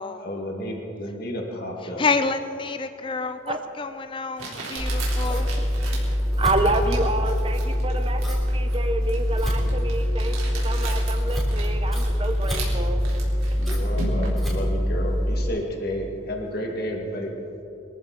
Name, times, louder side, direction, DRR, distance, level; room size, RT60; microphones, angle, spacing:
voice 1, 0.2-2.0 13.5-17.3, equal, 50° left, 0 dB, 2.2 m, -31 dB
voice 2, 2.0-5.5, left 4 dB, 25° left, 10 dB, 0.4 m, -28 dB
Crumpling crinkling, 3.5-3.6 4.4-14.5, right 3 dB, 80° right, 4.0 m, -38 dB
Scissors, 4.8-15.4, equal, ahead, 3.5 m, -24 dB
voice 3, 6.4-13.0, right 2 dB, 25° right, 6 dB, 0.8 m, -28 dB
24.5 x 14.0 x 4.1 m, 2.9 s
head